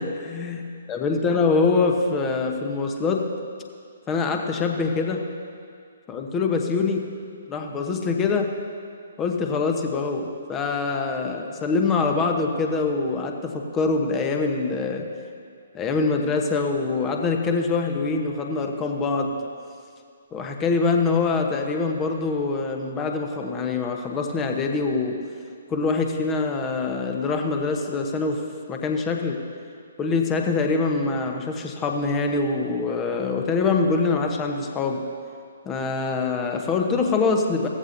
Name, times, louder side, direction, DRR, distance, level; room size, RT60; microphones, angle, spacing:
voice 1, 0.0-0.6 0.9-3.3 4.1-5.3 6.1-7.1 7.5-8.5 9.2-15.1 15.7-19.4 20.3-25.2 25.7-29.4 30.0-35.0 35.6-37.7, left 4 dB, 15° left, 3 dB, 1.0 m, -24 dB
16.5 x 14.5 x 2.7 m, 2.3 s
figure-of-eight pair, 130°, 0 cm